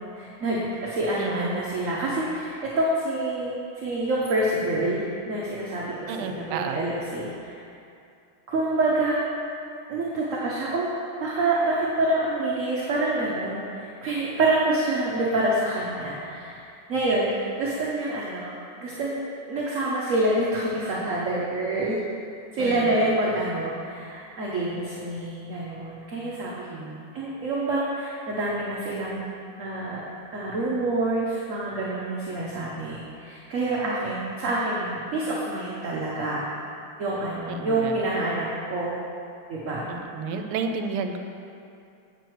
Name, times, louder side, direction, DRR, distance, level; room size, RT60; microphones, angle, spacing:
voice 1, 0.0-7.5 8.5-9.2 9.9-10.9 11.2-16.6 16.9-18.5 18.8-19.2 19.5-22.0 22.5-26.7 27.1-29.2 29.6-30.0 30.3-36.4 37.0-39.0 39.5-39.9, right 2 dB, 55° right, -5 dB, 0.9 m, -27 dB
voice 2, 1.2-1.6 6.1-6.8 22.6-22.9 26.7-27.1 37.5-38.0 39.9-41.2, right 5 dB, 85° right, 5 dB, 1.5 m, -31 dB
8.0 x 6.7 x 4.6 m, 2.5 s
omnidirectional pair, 2.3 m